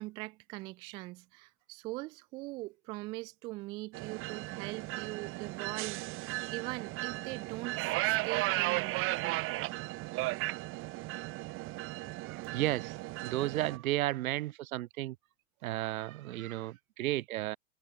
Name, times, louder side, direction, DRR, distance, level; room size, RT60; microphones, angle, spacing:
voice 1, 0.0-9.5, right 22 dB, 10° right, 0.3 m, -42 dB
sound 1, 3.9-13.8, right 21 dB, 30° right, 1.0 m, -35 dB
voice 2, 12.2-13.0 13.2-15.2 15.6-17.6, right 16 dB, 70° right, 1.0 m, -33 dB
supercardioid pair, 145°, 44 cm